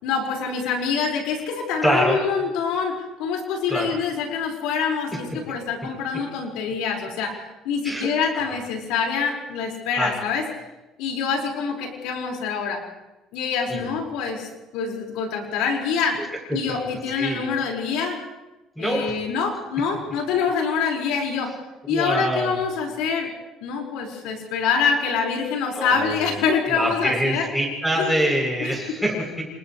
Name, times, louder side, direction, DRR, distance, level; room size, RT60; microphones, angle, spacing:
voice 1, 0.0-7.4 7.6-10.4 11.0-12.8 13.3-16.2 16.5-18.2 18.8-21.5 21.9-23.3 23.6-27.5 28.0-28.1 28.6-28.7, left 6 dB, 90° left, 0 dB, 5.2 m, -25 dB
voice 2, 1.8-2.2 3.7-4.0 7.8-8.1 8.3-8.6 9.9-10.3 13.7-13.8 16.2-16.3 16.7-16.8 17.2-17.4 18.7-19.0 21.8-22.6 25.7-26.4 26.7-29.4, right 1 dB, ahead, -1 dB, 7.9 m, -25 dB
29.0 x 28.5 x 3.3 m, 1.1 s
cardioid pair, 155°, 0 cm